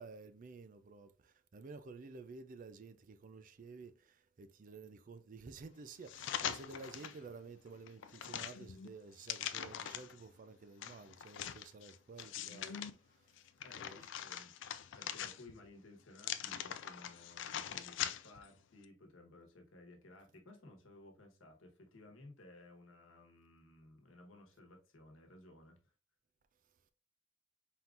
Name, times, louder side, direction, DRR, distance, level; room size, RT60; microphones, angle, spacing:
voice 1, 0.0-13.3 13.8-14.1, right 4 dB, 40° right, 0.4 m, -52 dB
sound 1, 6.1-7.2 7.7-10.2 10.8-12.9 13.4-15.7 16.2-18.5 18.8-18.9, left 10 dB, 65° left, 0.3 m, -42 dB
voice 2, 13.6-25.8, left 2 dB, 85° left, 1.2 m, -58 dB
4.3 x 3.7 x 2.4 m
head